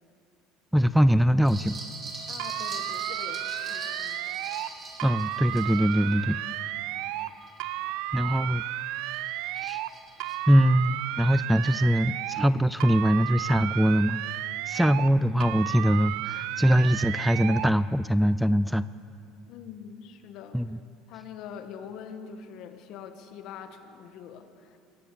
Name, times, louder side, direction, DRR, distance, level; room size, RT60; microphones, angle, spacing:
voice 1, 0.7-1.8 5.0-6.4 8.1-8.6 9.6-9.8 10.5-14.2 14.7-18.8 20.5-20.8, equal, ahead, 15 dB, 0.4 m, -22 dB
sound 1, 1.4-8.1 8.6-10.4, right 2 dB, 25° right, 3.7 m, -42 dB
voice 2, 2.3-4.3 19.5-20.6 21.1-24.8, left 7 dB, 60° left, 7 dB, 1.9 m, -44 dB
sound 2, 2.4-4.7 5.0-7.3 7.6-9.9 10.2-12.5 12.8-15.1 15.4-17.7, right 15 dB, 70° right, 0.6 m, -33 dB
22.0 x 17.5 x 6.9 m, 2.5 s
supercardioid pair, 120°, 0 cm